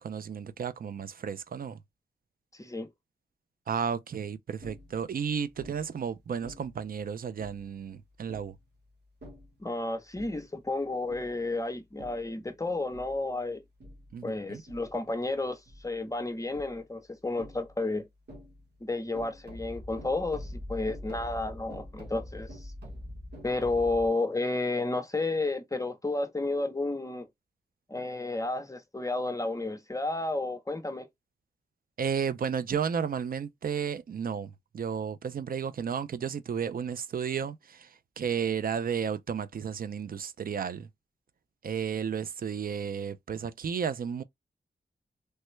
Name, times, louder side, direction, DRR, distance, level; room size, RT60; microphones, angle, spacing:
voice 1, 0.0-1.8 3.7-8.5 14.1-14.6 32.0-40.9 41.6-44.2, right 7 dB, 55° right, 0.4 m, -33 dB
voice 2, 2.6-2.9 9.6-13.6 14.2-18.0 18.8-22.7 23.4-27.3 27.9-31.1, left 2 dB, 20° left, 0.6 m, -32 dB
sound 1, 4.6-5.1 5.6-6.0 6.4-6.9 7.4-7.7 8.3-8.6 9.2-9.6 10.1-10.6 11.1-11.5 12.0-12.3 12.9-13.3 13.8-14.2 14.7-15.1 15.7-16.0 16.5-16.8 17.4-17.9 18.3-18.8 19.2-24.1, left 1 dB, 80° right, 1.3 m, -45 dB
3.2 x 2.1 x 3.0 m
wide cardioid pair, 100°, 17 cm